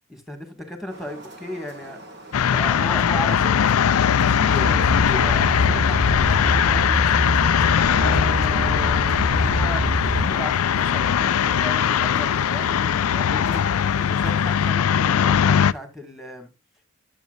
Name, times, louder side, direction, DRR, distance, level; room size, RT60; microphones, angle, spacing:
voice 1, 0.1-2.0 2.4-3.8 4.2-7.2 7.8-13.7 14.0-16.5, equal, ahead, 2.1 m, -35 dB
sound 1, 0.9-14.7, right 1 dB, 50° right, 2.2 m, -43 dB
sound 2, 2.3-15.7, left 8 dB, 85° left, 0.4 m, -20 dB
sound 3, 4.6-10.3, equal, 25° right, 1.1 m, -26 dB
12.0 x 7.3 x 2.6 m
head